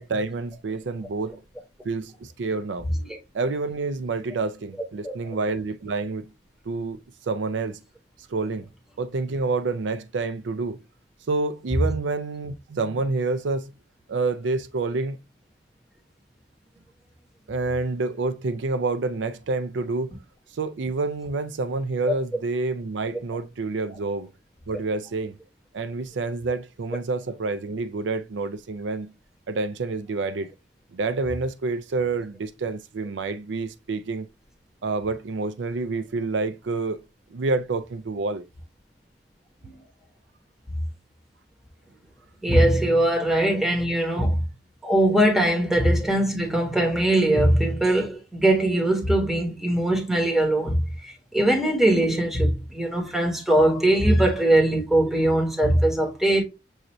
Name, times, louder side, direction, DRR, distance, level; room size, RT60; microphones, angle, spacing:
voice 1, 0.0-1.4 1.8-2.9 3.3-6.3 6.7-7.8 8.3-8.7 9.0-10.8 11.3-13.7 14.1-15.2 17.5-20.2 20.5-24.3 24.7-25.4 25.7-29.1 29.5-30.5 30.9-34.3 34.8-37.0 37.3-38.4, right 3 dB, 85° right, 0.5 m, -28 dB
voice 2, 42.4-44.4 44.8-56.4, right 1 dB, ahead, 1.2 m, -21 dB
6.3 x 2.6 x 2.9 m
head